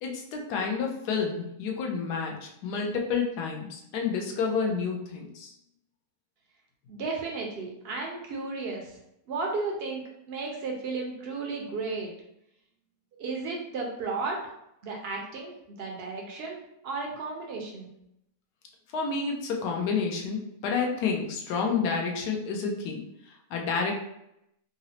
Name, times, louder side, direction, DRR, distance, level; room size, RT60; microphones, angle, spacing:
voice 1, 0.0-5.5 18.9-24.0, left 5 dB, 85° left, 1 dB, 1.2 m, -30 dB
voice 2, 6.9-8.9 9.3-10.0 10.3-12.1 13.2-14.4 14.8-17.9, right 3 dB, 70° right, 0 dB, 0.5 m, -34 dB
3.8 x 2.0 x 2.7 m, 0.80 s
omnidirectional pair, 1.7 m